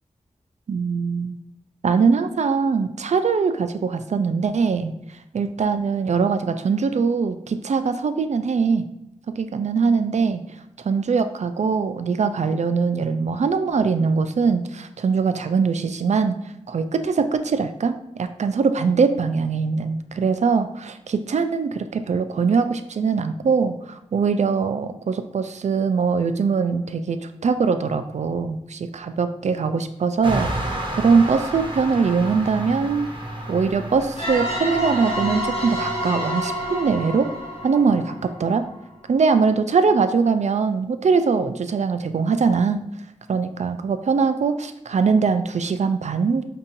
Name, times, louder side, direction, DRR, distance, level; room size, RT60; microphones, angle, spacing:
voice 1, 0.7-1.4 1.8-4.9 5.3-8.9 9.4-10.4 10.8-16.4 16.7-33.1 33.5-37.3 37.6-38.7 39.1-42.8 43.3-46.4, right 5 dB, 60° right, 9 dB, 0.4 m, -22 dB
sound 1, 30.2-38.2, right 1 dB, 40° right, 0.9 m, -32 dB
sound 2, 34.2-38.7, equal, 45° left, 1.1 m, -28 dB
5.3 x 2.7 x 2.5 m, 0.86 s
wide cardioid pair, 60°, 13 cm